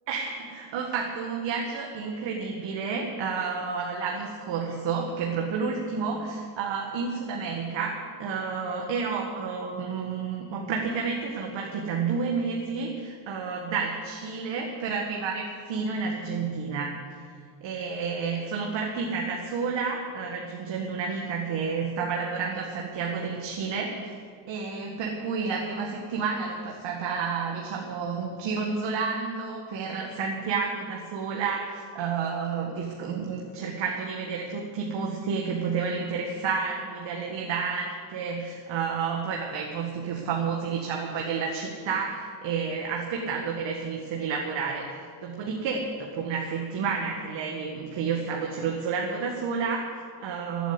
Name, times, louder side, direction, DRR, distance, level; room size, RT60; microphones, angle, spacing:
voice 1, 0.1-17.0 17.6-24.1 24.5-50.7, right 5 dB, 60° right, 0 dB, 2.0 m, -30 dB
15.0 x 9.1 x 9.7 m, 2.1 s
cardioid pair, 120°, 50 cm